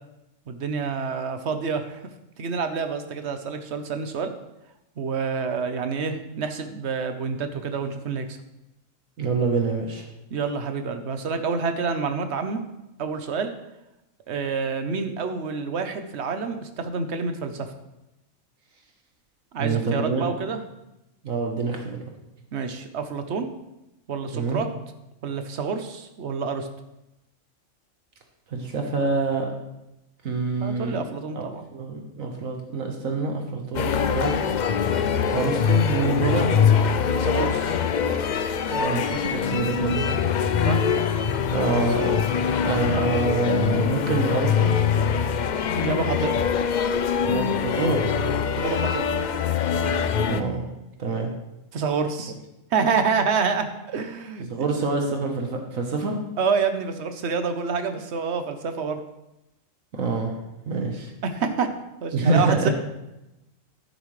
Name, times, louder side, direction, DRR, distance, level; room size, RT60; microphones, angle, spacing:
voice 1, 0.5-2.0 2.4-4.3 5.0-8.4 10.3-12.6 13.0-13.5 14.3-17.7 19.5-20.6 22.5-23.5 24.1-24.7 25.2-26.7 30.6-31.6 37.2-37.8 40.6-40.8 45.7-46.3 48.6-49.1 51.7-52.3 52.7-54.5 56.4-59.0 61.2-61.7 62.0-62.7, right 5 dB, 55° right, 8 dB, 1.1 m, -27 dB
voice 2, 9.2-10.0 19.6-20.2 21.2-22.0 24.3-24.6 28.5-29.5 30.2-31.0 31.3-31.4 31.7-34.3 35.3-36.5 38.7-40.1 41.5-42.1 42.6-44.8 47.3-48.3 50.3-50.6 51.0-51.3 54.4-56.2 59.9-60.3 60.7-61.1 62.1-62.7, right 3 dB, 75° right, 2 dB, 1.6 m, -26 dB
sound 1, 33.7-50.4, left 7 dB, 80° left, 0.4 m, -23 dB
11.0 x 9.3 x 3.2 m, 0.93 s
omnidirectional pair, 1.4 m